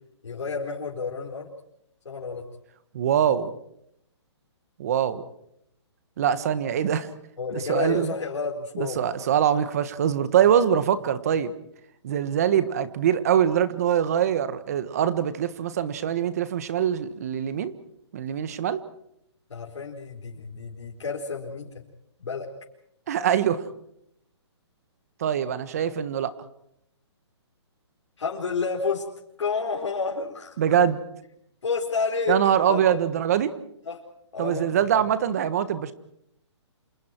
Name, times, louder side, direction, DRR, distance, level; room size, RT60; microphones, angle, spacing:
voice 1, 0.2-1.5 2.0-2.5 7.4-9.0 19.5-21.8 22.2-22.5 28.2-29.1 29.4-30.6 31.6-33.0 33.8-34.0 34.3-34.7, left 5 dB, 80° left, -2 dB, 4.7 m, -30 dB
voice 2, 2.9-3.5 4.8-5.2 6.2-7.1 7.5-8.1 8.7-11.5 12.0-17.7 18.1-18.8 23.1-23.7 25.2-26.3 30.6-31.0 32.3-33.5 34.4-35.9, right 9 dB, 35° right, 14 dB, 1.4 m, -23 dB
29.5 x 27.0 x 4.6 m, 0.73 s
hypercardioid pair, 175°, 15 cm